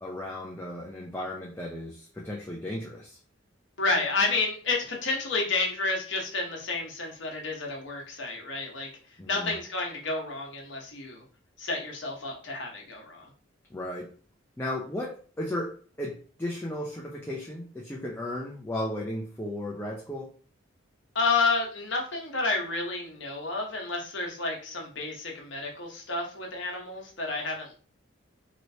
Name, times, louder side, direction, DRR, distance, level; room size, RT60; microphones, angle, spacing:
voice 1, 0.0-3.2 9.2-9.5 13.7-14.1 14.6-20.3, left 1 dB, 10° left, -2 dB, 0.4 m, -35 dB
voice 2, 3.8-11.2 11.6-13.3 21.1-27.7, left 3 dB, 65° left, 0 dB, 1.0 m, -30 dB
3.1 x 2.9 x 2.7 m, 0.40 s
head